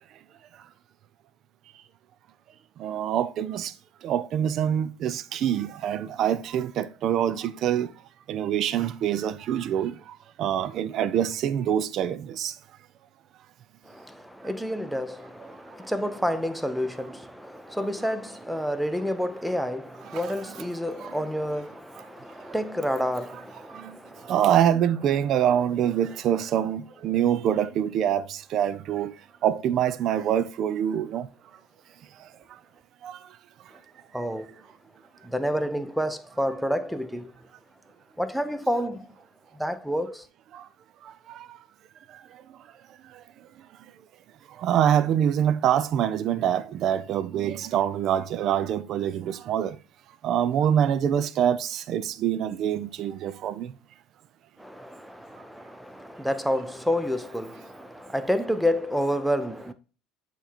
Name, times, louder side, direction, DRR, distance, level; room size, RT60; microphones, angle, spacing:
voice 1, 2.8-3.7 4.0-7.9 8.3-10.0 10.4-12.5 20.1-20.2 21.0-21.1 23.7-23.9 24.3-29.1 29.4-31.3 33.0-33.2 40.5-40.6 41.3-41.4 44.6-49.8 50.2-53.7, right 10 dB, 55° right, 0.4 m, -25 dB
voice 2, 13.8-24.4 33.7-33.8 34.1-34.6 35.2-37.5 38.2-39.1 39.5-40.3 54.6-59.7, equal, ahead, 0.6 m, -29 dB
7.9 x 3.0 x 4.2 m
supercardioid pair, 105°, 0 cm